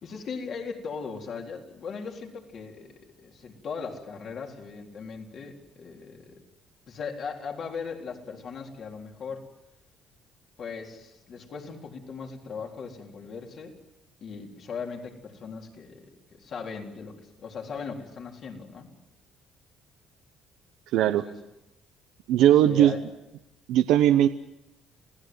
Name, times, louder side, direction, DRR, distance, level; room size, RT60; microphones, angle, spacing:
voice 1, 0.0-6.4 6.9-9.4 10.6-13.8 14.2-16.1 16.3-18.9 21.0-21.3 22.6-23.0, left 5 dB, 55° left, 1 dB, 3.9 m, -38 dB
voice 2, 20.9-21.3 22.3-22.9 23.7-24.3, right 11 dB, 80° right, 9 dB, 0.8 m, -19 dB
27.0 x 17.0 x 7.8 m, 0.93 s
cardioid pair, 85°, 0 cm